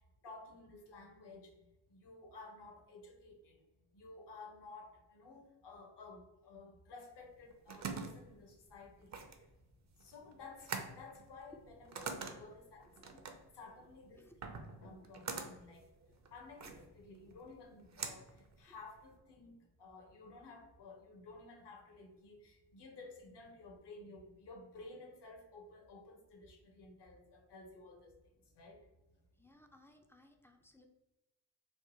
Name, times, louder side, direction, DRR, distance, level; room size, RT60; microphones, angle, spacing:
voice 1, 0.2-1.5 1.9-3.6 3.9-9.1 10.0-13.3 13.5-15.9 16.3-18.3 18.6-28.1 28.6-28.8, left 3 dB, 55° left, 2 dB, 1.1 m, -54 dB
sound 1, 7.2-19.2, right 5 dB, 35° right, 0.7 m, -46 dB
voice 2, 13.0-13.3 14.1-14.4 29.4-30.9, left 1 dB, 5° left, 4 dB, 0.5 m, -64 dB
3.5 x 2.1 x 3.0 m, 1.0 s
hypercardioid pair, 45°, 49 cm